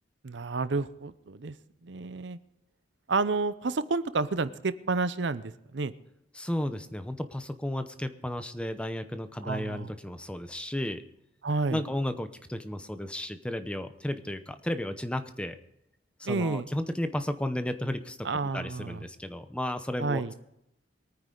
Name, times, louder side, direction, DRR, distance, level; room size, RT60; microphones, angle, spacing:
voice 1, 0.2-1.5 1.8-2.4 3.1-5.9 9.4-9.9 11.4-11.8 16.2-16.7 18.2-19.0 20.0-20.3, right 3 dB, 70° right, 14 dB, 0.7 m, -30 dB
voice 2, 6.3-11.0 11.7-15.6 16.2-18.3 18.5-20.2, left 1 dB, 5° left, 9 dB, 0.7 m, -33 dB
23.0 x 9.5 x 3.9 m, 0.81 s
head